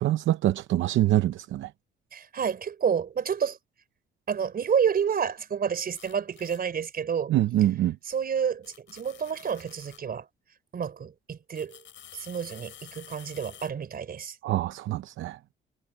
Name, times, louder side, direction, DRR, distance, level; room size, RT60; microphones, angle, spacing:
voice 1, 0.0-1.7 7.3-8.0 14.4-15.4, right 14 dB, 75° right, 0.7 m, -25 dB
voice 2, 2.1-3.6 4.3-7.3 8.1-10.3 10.7-11.8 12.1-14.4, right 7 dB, 50° right, 4.2 m, -29 dB
sound 1, 5.9-6.6 8.1-8.2 8.6-10.1 11.5-13.7, left 10 dB, 70° left, 7.6 m, -50 dB
cardioid pair, 90°, 20 cm